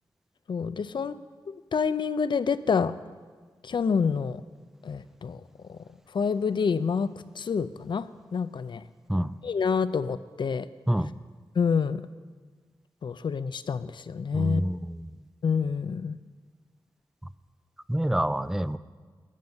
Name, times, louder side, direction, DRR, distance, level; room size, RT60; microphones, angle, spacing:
voice 1, 0.5-1.2 1.5-2.9 3.6-4.4 4.8-5.4 5.7-5.8 6.1-8.8 9.4-10.7 11.6-12.0 13.0-14.6 15.4-16.2, left 6 dB, 70° left, 14 dB, 0.5 m, -27 dB
voice 2, 14.3-15.1 17.9-18.8, right 1 dB, 5° right, 15 dB, 0.4 m, -27 dB
12.5 x 6.6 x 9.4 m, 1.5 s
wide cardioid pair, 75°, 8 cm